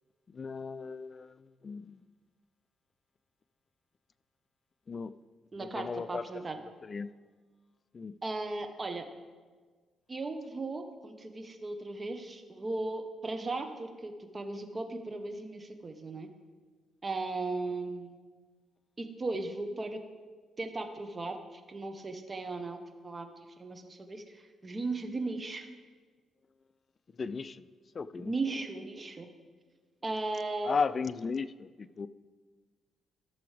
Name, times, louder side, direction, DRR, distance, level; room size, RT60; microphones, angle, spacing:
voice 1, 0.3-2.0 4.9-5.1 5.6-6.2 6.8-7.1 7.9-8.2 27.2-27.7 27.9-28.3 30.6-32.1, left 5 dB, 40° left, 16 dB, 0.3 m, -35 dB
voice 2, 5.5-6.6 8.2-9.1 10.1-16.3 17.0-18.2 19.0-20.0 20.6-23.3 23.6-25.7 28.2-29.3 30.0-30.8, right 3 dB, 30° right, 6 dB, 1.0 m, -37 dB
14.5 x 6.9 x 3.4 m, 1.4 s
cardioid pair, 80°, 0 cm